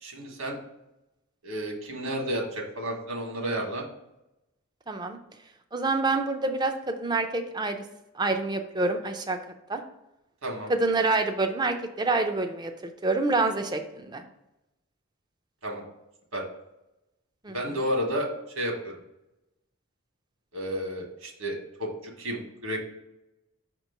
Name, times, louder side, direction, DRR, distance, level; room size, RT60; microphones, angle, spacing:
voice 1, 0.0-0.6 1.4-3.8 10.4-10.7 15.6-15.8 16.3-16.4 17.5-18.3 18.6-18.9 20.5-22.8, equal, 75° right, 1 dB, 1.4 m, -31 dB
voice 2, 4.9-5.2 5.7-7.8 8.2-9.4 9.7-9.8 10.7-12.7 13.0-14.2 17.4-17.6, right 3 dB, 20° right, 6 dB, 0.4 m, -27 dB
5.9 x 3.0 x 5.7 m, 0.90 s
head